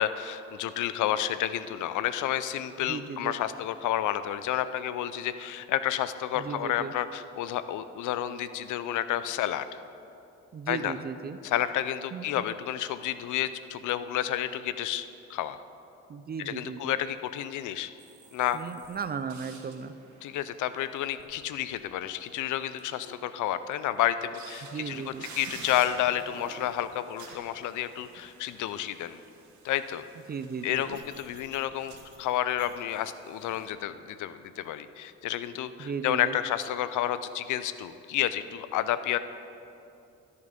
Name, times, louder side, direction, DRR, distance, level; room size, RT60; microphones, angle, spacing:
voice 1, 0.0-9.7 10.7-10.9 11.4-15.6 16.4-17.9 18.3-18.6 20.2-29.2 29.6-30.0 30.6-39.2, left 12 dB, 80° left, 13 dB, 0.6 m, -30 dB
voice 2, 2.9-3.3 6.3-6.9 10.5-11.4 12.1-12.5 16.1-16.9 18.5-19.9 24.7-25.2 30.3-31.0 35.8-36.3, right 6 dB, 30° right, 11 dB, 0.4 m, -36 dB
sound 1, 18.0-21.8 22.1-22.2 22.7-23.7 24.3-33.7, right 4 dB, 70° right, 1.6 m, -50 dB
13.0 x 6.7 x 5.2 m, 2.7 s
cardioid pair, 90°, 30 cm